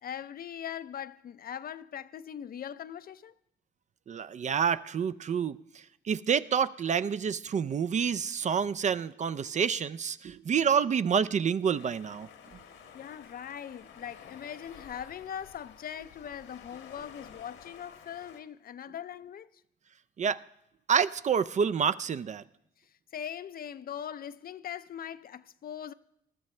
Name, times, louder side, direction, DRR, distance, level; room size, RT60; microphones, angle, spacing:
voice 1, 0.0-3.4 12.6-19.6 22.8-25.9, left 9 dB, 50° left, 0.5 m, -41 dB
voice 2, 4.1-12.3 20.2-20.4 20.9-22.4, right 7 dB, 35° right, 0.4 m, -28 dB
sound 1, 11.7-18.4, left 7 dB, 75° left, 1.4 m, -52 dB
20.5 x 12.5 x 3.2 m
cardioid pair, 90°, 20 cm